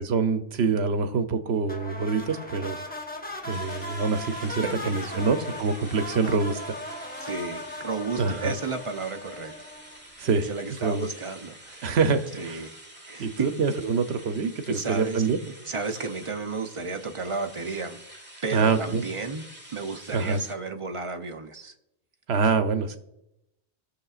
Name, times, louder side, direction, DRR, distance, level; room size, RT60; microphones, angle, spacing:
voice 1, 0.0-2.8 3.4-6.6 8.2-8.5 10.2-10.5 10.8-11.1 11.8-12.6 13.2-15.4 18.5-19.0 20.1-20.4 22.3-23.0, right 4 dB, 75° right, 9 dB, 1.0 m, -25 dB
sound 1, 1.7-10.1, left 1 dB, 10° left, 0.9 m, -38 dB
sound 2, 3.5-20.5, right 1 dB, 10° right, 1.3 m, -47 dB
voice 2, 4.6-5.6 7.2-9.5 10.5-11.9 12.4-12.7 13.0-13.6 14.7-15.3 15.7-18.0 18.4-19.4 19.7-21.7, right 4 dB, 35° right, 6 dB, 0.6 m, -33 dB
17.5 x 6.6 x 2.4 m, 0.84 s
omnidirectional pair, 1.1 m